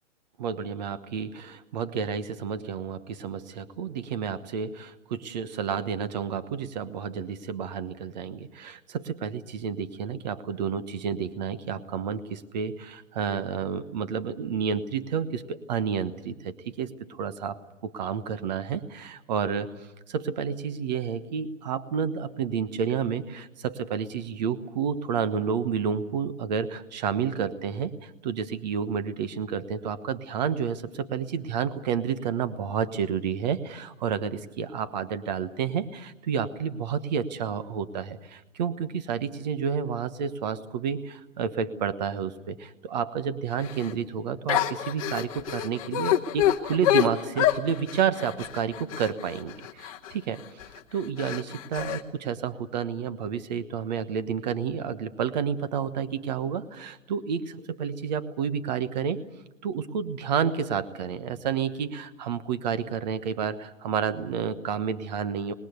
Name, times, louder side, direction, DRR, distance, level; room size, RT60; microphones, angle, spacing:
voice 1, 0.4-50.4 50.9-59.2 59.6-65.5, right 7 dB, 35° right, 12 dB, 1.2 m, -30 dB
sound 1, 43.6-43.9 44.5-50.1 50.6-50.8 51.2-52.0, left 12 dB, 25° left, 1.2 m, -27 dB
25.5 x 21.0 x 8.1 m, 0.94 s
hypercardioid pair, 165°, 38 cm